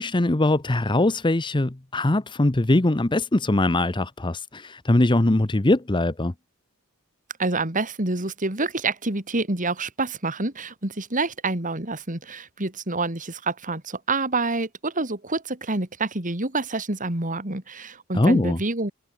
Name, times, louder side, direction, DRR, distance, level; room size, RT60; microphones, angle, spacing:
voice 1, 0.0-6.3 18.1-18.6, left 1 dB, 20° left, 0.8 m, -21 dB
voice 2, 7.4-18.9, right 3 dB, 35° right, 2.9 m, -27 dB
head